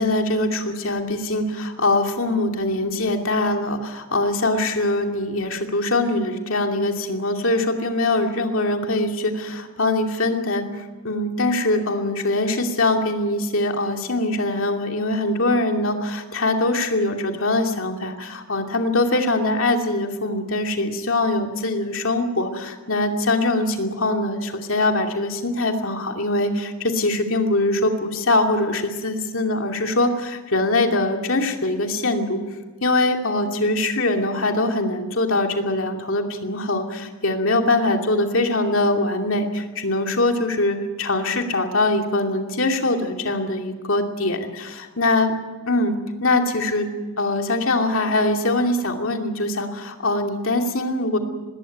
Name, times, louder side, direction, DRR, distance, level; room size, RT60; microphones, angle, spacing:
voice 1, 0.0-10.6 11.0-32.4 32.8-45.3 45.7-45.9 46.2-46.9 47.2-51.2, left 2 dB, 65° left, 3 dB, 2.7 m, -22 dB
20.0 x 17.5 x 9.3 m, 1.3 s
head